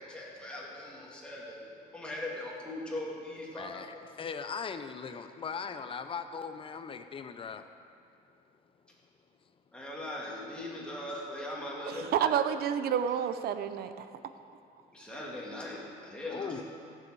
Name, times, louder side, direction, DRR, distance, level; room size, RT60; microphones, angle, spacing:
voice 1, 0.0-1.6 1.9-4.0 9.7-12.4 14.9-16.6, left 1 dB, 5° left, -5 dB, 2.8 m, -40 dB
voice 2, 3.6-7.6 16.3-16.6, left 6 dB, 30° left, 9 dB, 0.7 m, -39 dB
voice 3, 11.8-14.1, right 9 dB, 65° right, 11 dB, 0.7 m, -29 dB
15.5 x 7.7 x 4.8 m, 2.4 s
cardioid pair, 110°, 17 cm